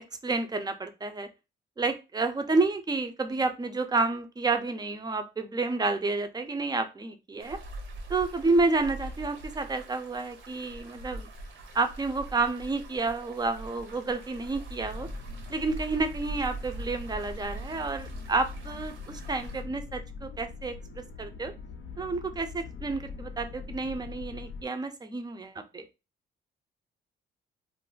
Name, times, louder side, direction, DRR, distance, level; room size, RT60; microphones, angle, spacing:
voice 1, 0.2-1.3 1.8-7.6 8.1-11.3 11.7-15.1 15.5-20.7 21.2-21.5 22.0-25.9, right 3 dB, 20° right, 8 dB, 0.4 m, -30 dB
sound 1, 7.4-19.6, right 2 dB, 75° right, 0.7 m, -42 dB
sound 2, 14.8-24.6, left 5 dB, 75° left, 0.5 m, -43 dB
2.4 x 2.0 x 3.7 m, 0.28 s
cardioid pair, 90°, 20 cm